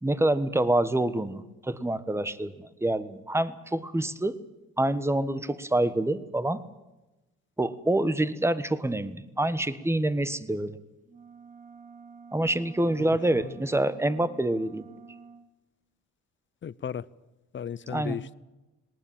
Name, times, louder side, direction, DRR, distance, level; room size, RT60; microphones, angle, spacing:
voice 1, 0.0-4.4 4.8-6.6 7.6-10.8 12.3-14.9 17.9-18.2, right 1 dB, 10° right, 14 dB, 1.3 m, -27 dB
sound 1, 11.0-15.5, right 5 dB, 25° right, 1.5 m, -49 dB
voice 2, 13.0-13.6 16.6-17.1 17.5-18.3, left 8 dB, 40° left, 20 dB, 0.7 m, -36 dB
19.5 x 19.0 x 9.0 m, 1.0 s
cardioid pair, 90°, 30 cm